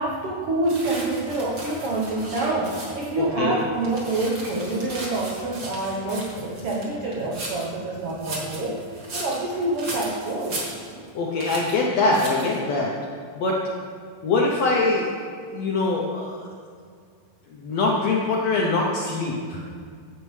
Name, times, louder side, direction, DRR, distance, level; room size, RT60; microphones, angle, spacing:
voice 1, 0.0-10.6, right 2 dB, 85° right, -3 dB, 1.2 m, -27 dB
sound 1, 0.7-3.2 3.6-7.7 8.1-11.1 11.4-11.8 12.1-12.6, right 2 dB, 45° right, 1.2 m, -37 dB
voice 2, 3.2-3.6 11.1-12.9 13.4-13.6 14.2-15.1 15.5-16.4 17.5-19.6, left 3 dB, 75° left, -2 dB, 1.5 m, -23 dB
10.5 x 8.0 x 3.2 m, 2.1 s
omnidirectional pair, 3.9 m